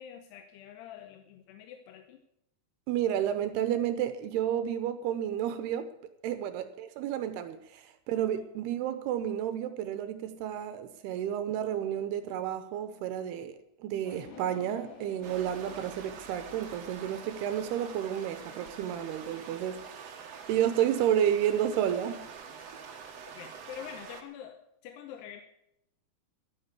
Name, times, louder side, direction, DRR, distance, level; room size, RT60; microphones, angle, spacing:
voice 1, 0.0-2.2 6.4-6.5 23.3-25.4, left 9 dB, 80° left, 2.8 m, -46 dB
voice 2, 2.9-5.9 6.2-22.3, right 10 dB, 75° right, 2.6 m, -31 dB
sound 1, 14.0-19.5, left 5 dB, 65° left, 3.8 m, -53 dB
sound 2, 15.2-24.2, right 6 dB, 60° right, 1.8 m, -46 dB
12.0 x 9.4 x 8.1 m
omnidirectional pair, 5.1 m